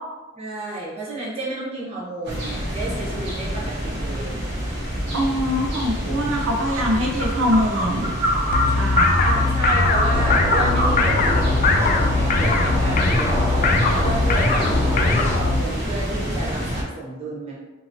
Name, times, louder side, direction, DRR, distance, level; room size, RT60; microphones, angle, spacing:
voice 1, 0.3-4.4 9.2-13.5 14.0-17.6, right 2 dB, 30° right, -7 dB, 1.0 m, -31 dB
sound 1, 2.2-16.8, equal, 60° right, 0.8 m, -26 dB
voice 2, 5.1-8.1 8.7-9.2 13.8-14.0, equal, 90° right, -1 dB, 0.5 m, -23 dB
sound 2, 8.5-15.6, left 3 dB, 45° left, 0.3 m, -20 dB
sound 3, 10.1-15.4, equal, 15° right, 0.5 m, -26 dB
2.8 x 2.7 x 2.6 m, 1.2 s
head